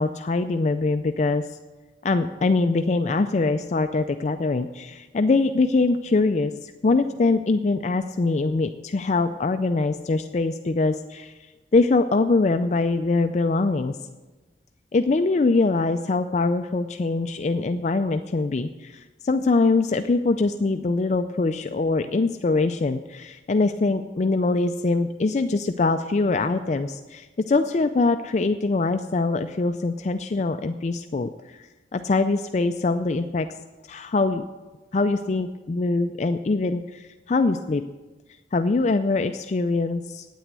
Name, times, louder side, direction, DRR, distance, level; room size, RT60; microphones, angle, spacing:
voice 1, 0.0-1.6 2.0-11.3 11.7-14.0 14.9-33.5 33.9-34.4 34.9-37.8 38.5-40.3, left 3 dB, 40° left, 8 dB, 0.4 m, -23 dB
9.2 x 9.1 x 8.1 m, 1.2 s
head